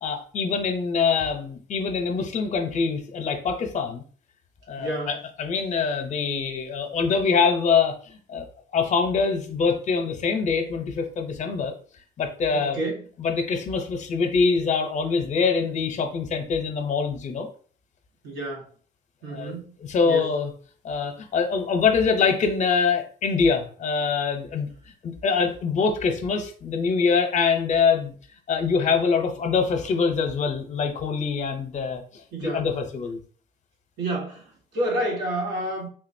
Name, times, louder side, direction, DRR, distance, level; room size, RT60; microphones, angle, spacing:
voice 1, 0.0-4.0 4.7-8.5 8.7-11.7 12.2-12.8 13.2-17.5 19.3-20.5 20.8-24.7 25.0-28.1 28.5-33.2, left 5 dB, 45° left, 0.7 m, -24 dB
voice 2, 4.8-5.1 12.5-13.0 18.2-18.6 19.2-19.7 20.0-20.2 32.3-32.7 34.0-35.9, right 1 dB, 85° right, 1.1 m, -29 dB
3.7 x 2.4 x 2.6 m
cardioid pair, 110°, 17 cm